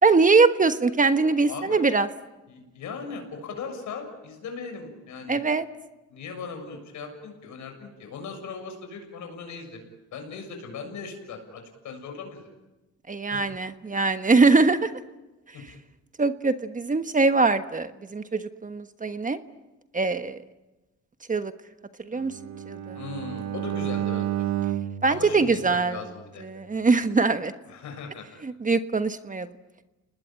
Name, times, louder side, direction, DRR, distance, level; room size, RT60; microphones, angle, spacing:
voice 1, 0.0-2.1 5.3-5.6 13.1-14.9 16.2-19.4 19.9-20.4 21.3-21.5 22.0-22.4 22.7-23.0 25.0-26.0 26.4-27.5 28.4-29.5, right 4 dB, 25° right, 10 dB, 1.3 m, -22 dB
voice 2, 1.5-1.8 2.5-5.4 6.1-9.8 10.1-12.5 13.3-13.5 15.5-15.8 23.0-24.5 25.1-26.4 27.7-28.3, left 5 dB, 75° left, 5 dB, 7.1 m, -38 dB
Bowed string instrument, 22.2-26.3, right 12 dB, 65° right, 1.4 m, -31 dB
30.0 x 20.0 x 9.0 m, 1.1 s
cardioid pair, 90°, 30 cm